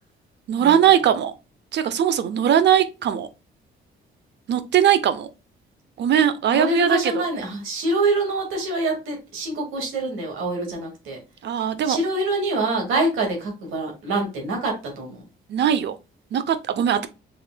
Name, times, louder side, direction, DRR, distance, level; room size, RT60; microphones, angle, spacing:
voice 1, 0.5-1.3 1.7-3.3 4.5-5.3 6.0-7.2 11.4-12.0 15.5-15.9 16.3-17.1, right 9 dB, 60° right, 0.6 m, -20 dB
voice 2, 6.5-11.2 11.9-15.2, right 2 dB, 85° right, 1.9 m, -25 dB
5.1 x 3.7 x 2.2 m
cardioid pair, 90°, 20 cm